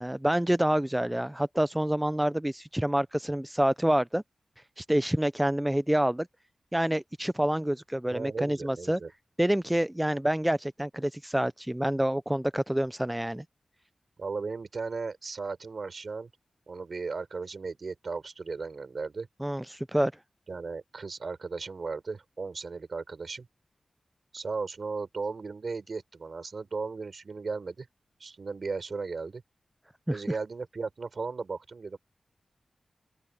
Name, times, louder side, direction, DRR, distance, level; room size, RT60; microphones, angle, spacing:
voice 1, 0.0-4.2 4.8-6.3 6.7-9.0 9.4-13.4 19.4-20.1 30.1-30.3, right 1 dB, 10° right, 0.5 m, -27 dB
voice 2, 8.1-9.1 14.2-16.3 16.7-19.3 20.5-23.5 24.3-27.9 28.2-29.4 30.1-32.0, right 4 dB, 65° right, 5.3 m, -36 dB
open air
cardioid pair, 55°, 0 cm